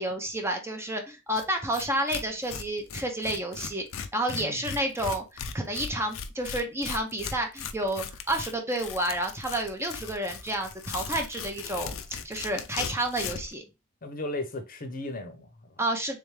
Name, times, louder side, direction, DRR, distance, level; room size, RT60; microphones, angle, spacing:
voice 1, 0.0-3.9 4.1-13.6 15.8-16.2, right 1 dB, 15° right, 0.7 m, -30 dB
Tearing, 1.4-1.5 1.7-13.5, left 7 dB, 85° left, 0.5 m, -38 dB
voice 2, 4.3-4.7 14.0-15.8, left 2 dB, 45° left, 0.7 m, -36 dB
3.5 x 3.4 x 3.2 m
head